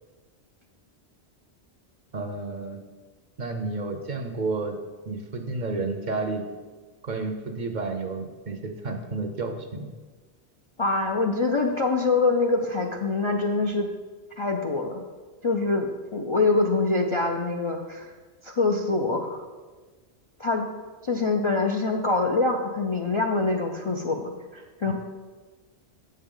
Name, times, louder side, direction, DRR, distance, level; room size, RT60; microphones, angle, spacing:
voice 1, 2.1-2.8 3.4-4.8 5.1-6.4 7.0-9.9 24.9-25.0, right 3 dB, 50° right, 5 dB, 0.7 m, -31 dB
voice 2, 10.8-13.9 14.4-15.0 15.4-18.1 18.4-19.4 20.4-20.7 21.0-24.9, left 3 dB, 45° left, 1 dB, 0.4 m, -25 dB
7.8 x 6.5 x 3.8 m, 1.4 s
omnidirectional pair, 1.1 m